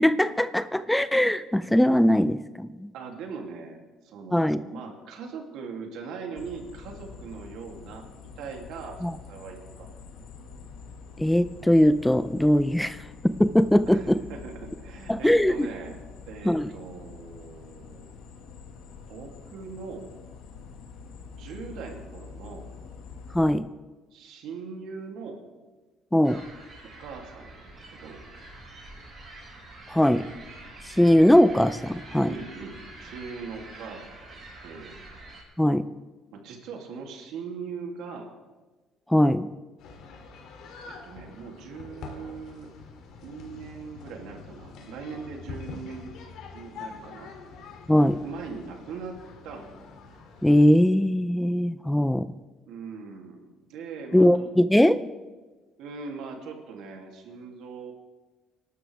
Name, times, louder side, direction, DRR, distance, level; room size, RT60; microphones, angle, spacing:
voice 1, 0.0-2.9 4.3-4.6 9.0-9.1 11.2-14.2 15.1-15.7 16.4-16.7 23.3-23.7 26.1-26.4 29.9-30.3 30.8-32.3 35.6-35.9 39.1-39.5 47.9-48.2 50.4-52.3 54.1-55.0, left 1 dB, 5° left, 14 dB, 0.4 m, -21 dB
voice 2, 2.9-8.0 8.4-9.9 13.9-16.0 16.3-18.1 19.1-20.1 21.3-22.7 24.1-25.4 27.0-28.2 32.3-35.0 36.3-38.3 40.8-42.7 43.2-46.2 46.5-47.3 48.2-49.7 52.7-54.5 55.8-57.9, right 5 dB, 80° right, 2 dB, 2.8 m, -40 dB
sound 1, 6.4-23.6, left 5 dB, 90° left, 1.9 m, -46 dB
sound 2, 26.2-35.4, right 2 dB, 30° right, 5.5 m, -46 dB
sound 3, 39.8-50.7, left 4 dB, 75° left, 2.7 m, -45 dB
25.5 x 12.0 x 3.5 m, 1.3 s
cardioid pair, 140°, 0 cm